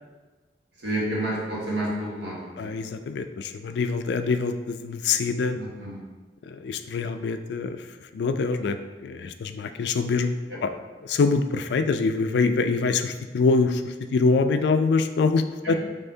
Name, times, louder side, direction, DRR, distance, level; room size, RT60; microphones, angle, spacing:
voice 1, 0.8-2.7 5.5-6.0 15.6-15.7, right 1 dB, 75° right, -5 dB, 1.4 m, -29 dB
voice 2, 2.6-5.6 6.5-7.8 8.1-8.8 9.0-10.3 10.6-10.7 11.0-15.7, left 4 dB, 70° left, 9 dB, 0.3 m, -24 dB
5.4 x 3.6 x 2.7 m, 1.3 s
head